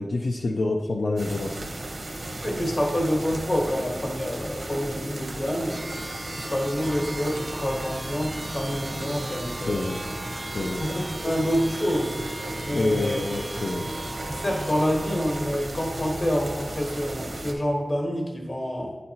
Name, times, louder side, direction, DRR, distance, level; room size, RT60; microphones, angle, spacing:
voice 1, 0.0-1.7 9.6-10.0 10.5-10.8 12.7-13.8, left 2 dB, 80° left, 0 dB, 0.4 m, -27 dB
sound 1, 1.2-17.5, right 1 dB, 75° right, 0.8 m, -35 dB
voice 2, 2.4-5.8 6.3-9.9 10.8-12.2 12.6-13.2 14.3-19.0, equal, 50° left, 0 dB, 1.3 m, -27 dB
sound 2, 5.7-15.3, right 1 dB, 20° right, 0.4 m, -39 dB
9.4 x 4.0 x 2.9 m, 1.2 s
wide cardioid pair, 70°, 0 cm